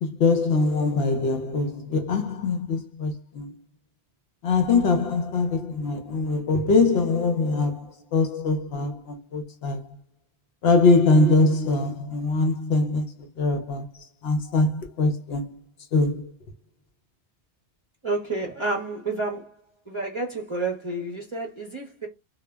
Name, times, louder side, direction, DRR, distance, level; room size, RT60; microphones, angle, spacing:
voice 1, 0.0-3.6 4.4-10.0 10.6-15.6 15.9-16.3, left 3 dB, 70° left, 0.8 m, -23 dB
voice 2, 18.0-19.5 19.9-22.1, right 2 dB, 30° right, 0.7 m, -30 dB
2.1 x 2.0 x 3.3 m
omnidirectional pair, 1.1 m